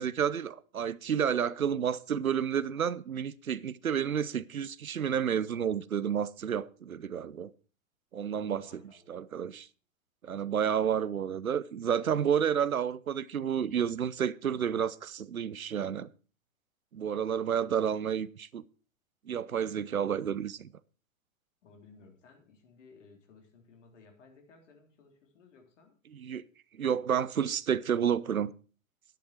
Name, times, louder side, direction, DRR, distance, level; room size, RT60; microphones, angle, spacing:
voice 1, 0.0-7.5 8.1-8.8 9.1-9.7 10.2-16.1 16.9-18.6 19.3-20.7 26.1-26.4 26.7-28.5, right 8 dB, 85° right, 0.7 m, -30 dB
voice 2, 8.6-9.2 17.4-18.0 21.6-26.0, left 4 dB, 60° left, 3.7 m, -58 dB
12.0 x 10.5 x 4.4 m
figure-of-eight pair, 105°, 41 cm